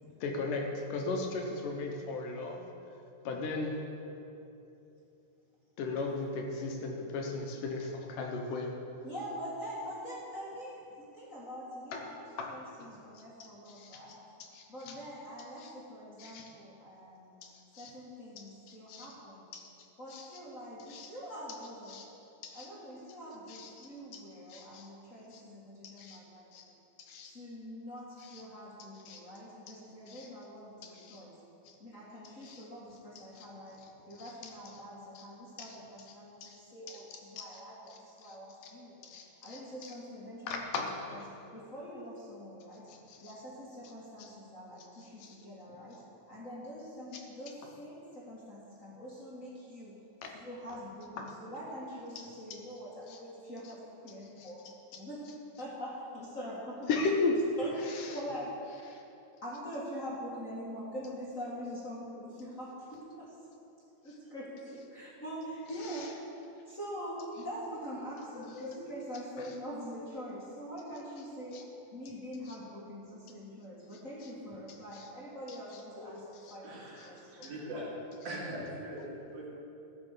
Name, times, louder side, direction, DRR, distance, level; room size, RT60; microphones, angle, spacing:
voice 1, 0.2-2.6 3.3-3.8 5.8-8.7 11.9-12.0 12.4-12.5 12.8-12.9 13.1-14.0 14.4-15.0 15.6-15.7 16.2-16.5 17.4-17.5 17.7-17.9 18.7-19.1 19.5-19.7 20.1-20.4 20.9-21.1 21.9-22.1 22.4-22.7 23.5-24.2 24.5-24.9 25.3-25.4 25.8-26.2 26.5-26.6 27.0-27.3 28.2-28.4 29.1-29.2 29.7-29.8 30.1-30.3 30.8-31.2 31.7-31.8 32.4-32.6 33.4-33.5 34.2-34.3 35.2-35.3 35.6-35.8 36.4-36.6 36.9-37.0 37.4-37.6 37.9-38.4 38.6-38.7 39.0-39.9 40.5-41.3 42.9-43.3 44.2-44.3 45.0-45.4 47.1-47.2 50.2-50.3 51.2-51.3 52.5-52.6 53.1-53.2 54.4-54.5 54.9-55.0 56.9-57.4 57.9-58.2 58.9-59.0 65.8-66.1 68.3-68.8 71.5-71.6 74.9-75.1 75.5-76.6 77.0-77.1 77.4-77.5, left 3 dB, 70° left, 2 dB, 2.5 m, -38 dB
voice 2, 9.0-14.2 14.7-17.4 17.8-19.5 20.0-22.0 22.5-26.5 27.3-31.3 31.8-33.8 34.1-39.1 39.4-40.6 41.1-41.2 41.5-42.8 43.2-46.0 46.3-49.9 50.3-54.6 54.9-55.2 55.6-57.0 57.6-58.5 59.4-63.3 64.0-66.1 66.7-71.6 71.9-77.5, equal, 30° left, -7 dB, 1.7 m, -44 dB
voice 3, 76.6-77.9 78.2-79.5, right 1 dB, 85° right, -5 dB, 4.2 m, -41 dB
15.0 x 6.4 x 6.7 m, 2.9 s
omnidirectional pair, 4.0 m